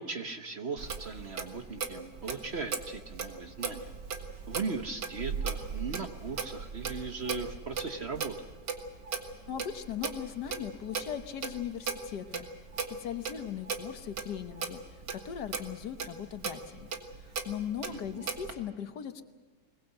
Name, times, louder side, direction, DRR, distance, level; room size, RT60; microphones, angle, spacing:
voice 1, 0.0-3.9 4.5-8.4 17.9-18.3, right 4 dB, 45° right, 7 dB, 1.2 m, -38 dB
Clock, 0.8-18.5, right 5 dB, 80° right, 2.2 m, -38 dB
voice 2, 9.5-12.4 13.0-14.8 15.1-16.9 17.4-19.2, left 9 dB, 75° left, 9 dB, 1.7 m, -38 dB
21.5 x 21.0 x 7.9 m, 1.4 s
omnidirectional pair, 1.8 m